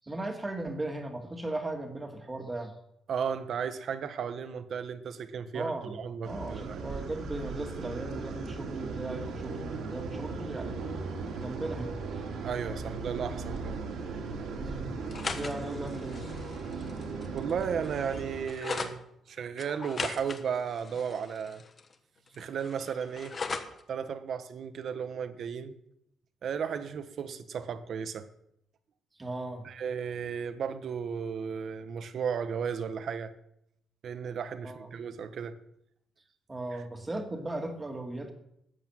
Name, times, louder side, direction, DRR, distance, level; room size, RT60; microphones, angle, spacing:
voice 1, 0.0-2.7 5.5-6.0 6.2-10.8 11.4-12.2 14.6-15.0 15.2-16.3 16.7-16.8 29.2-29.7 34.6-35.2 36.5-38.3, right 2 dB, 15° right, 2.1 m, -37 dB
voice 2, 3.1-6.8 12.4-13.8 17.3-19.0 19.3-21.6 22.3-23.4 23.9-25.7 26.4-28.3 29.6-33.3 34.0-35.6 36.7-36.8, right 7 dB, 50° right, 1.2 m, -34 dB
sound 1, 6.2-18.5, right 4 dB, 70° right, 3.3 m, -37 dB
sound 2, 15.0-18.9 19.6-21.9 22.3-23.8, left 4 dB, 30° left, 1.3 m, -39 dB
13.0 x 8.4 x 9.1 m
cardioid pair, 145°, 0 cm